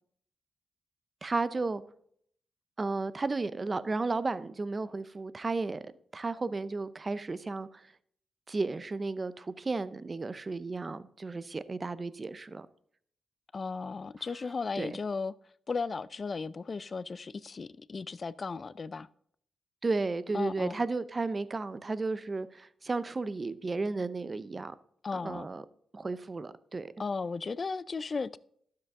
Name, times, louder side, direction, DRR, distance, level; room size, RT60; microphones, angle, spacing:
voice 1, 1.2-1.8 2.8-5.9 6.1-7.9 8.5-12.7 14.8-15.0 19.8-24.7 25.1-25.6 25.9-26.9, right 3 dB, 35° right, 0.6 m, -33 dB
voice 2, 13.5-15.3 15.7-19.1 20.3-20.8 25.0-25.5 27.0-28.4, left 4 dB, 40° left, 0.4 m, -35 dB
12.0 x 7.6 x 3.6 m
cardioid pair, 80°, 0 cm